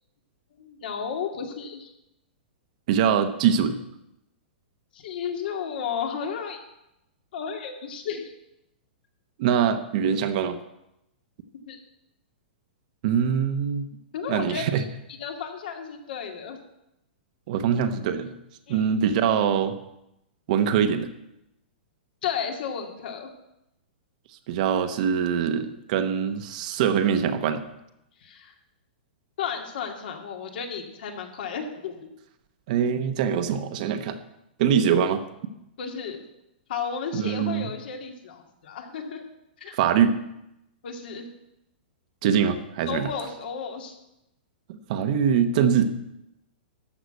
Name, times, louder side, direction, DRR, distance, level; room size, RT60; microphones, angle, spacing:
voice 1, 0.6-1.9 4.9-6.6 7.3-8.3 11.7-11.8 14.1-14.8 15.2-16.6 18.7-18.9 22.2-23.3 28.2-28.5 29.4-32.1 35.8-36.2 36.7-39.2 39.6-39.8 40.8-41.3 42.9-43.9, left 7 dB, 60° left, 3 dB, 2.2 m, -33 dB
voice 2, 2.9-3.8 9.4-10.6 13.0-13.9 14.3-14.9 17.5-18.3 18.7-19.7 20.5-21.1 24.5-27.6 32.7-34.2 34.6-35.2 37.1-37.7 39.7-40.2 42.2-43.1 44.7-45.9, right 8 dB, 45° right, 8 dB, 1.0 m, -23 dB
13.0 x 5.8 x 8.0 m, 0.86 s
hypercardioid pair, 160°, 6 cm